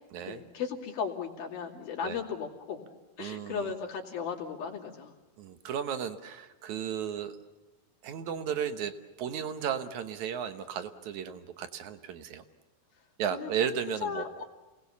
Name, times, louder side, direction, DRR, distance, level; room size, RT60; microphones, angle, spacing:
voice 1, 0.3-2.9 3.2-5.1 13.3-13.5 13.9-14.5, left 6 dB, 75° left, -2 dB, 4.4 m, -36 dB
voice 2, 3.2-3.7 5.4-7.4 8.0-12.4 13.2-14.4, right 8 dB, 65° right, 9 dB, 2.2 m, -34 dB
29.0 x 19.5 x 7.0 m, 1.2 s
omnidirectional pair, 4.3 m